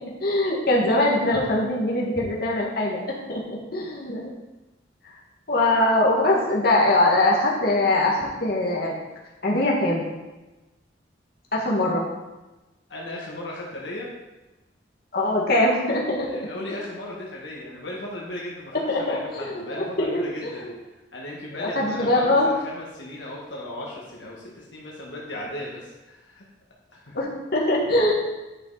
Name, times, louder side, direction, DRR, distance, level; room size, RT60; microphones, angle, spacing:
voice 1, 0.0-3.0 3.3-4.3 5.5-9.0 9.4-10.0 11.5-12.0 15.1-16.3 18.9-20.5 21.6-22.5 27.1-28.1, left 1 dB, 55° left, -4 dB, 1.9 m, -22 dB
voice 2, 12.9-14.1 16.2-20.6 21.1-26.4 26.9-27.1, left 1 dB, 75° left, -4 dB, 1.6 m, -36 dB
10.5 x 5.6 x 4.1 m, 1.1 s
head